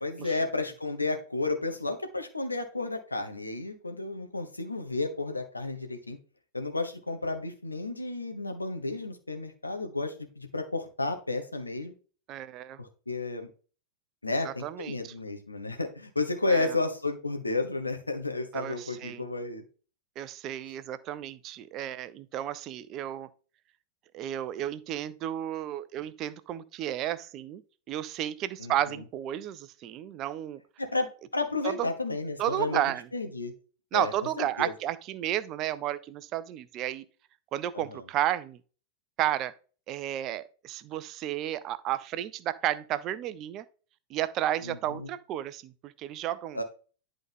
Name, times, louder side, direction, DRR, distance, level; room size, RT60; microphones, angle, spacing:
voice 1, 0.0-6.2 6.5-11.9 12.8-13.5 14.2-19.6 28.6-29.0 30.8-32.8 33.1-33.5 33.9-34.1 34.4-34.7 37.7-38.0 44.6-45.1 46.5-46.6, left 3 dB, 80° left, 1.1 m, -32 dB
voice 2, 12.3-12.8 14.4-15.1 16.5-16.7 18.5-19.2 20.2-23.3 24.1-27.6 27.9-30.6 31.6-31.9 32.4-33.1 33.9-37.0 37.5-38.6 39.2-39.5 39.9-43.6 44.1-46.6, right 12 dB, 35° right, 0.5 m, -32 dB
10.5 x 3.8 x 3.6 m
figure-of-eight pair, 90°, 0 cm